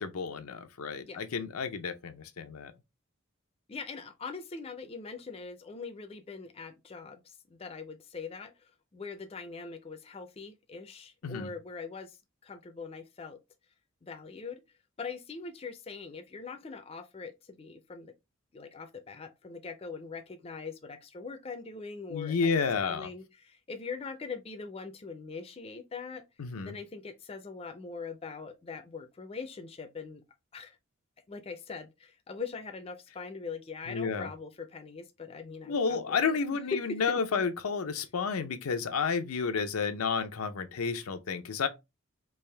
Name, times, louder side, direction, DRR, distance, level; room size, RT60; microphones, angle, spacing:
voice 1, 0.0-2.7 11.2-11.5 22.1-23.1 26.4-26.8 33.9-34.3 35.7-41.7, left 5 dB, 85° left, 0.5 m, -31 dB
voice 2, 3.7-12.2 12.4-13.4 14.0-14.6 15.0-18.1 18.5-26.2 26.6-30.2 30.5-30.8 31.3-36.3 36.7-37.2, left 4 dB, 25° left, 0.4 m, -42 dB
3.4 x 2.5 x 3.2 m
head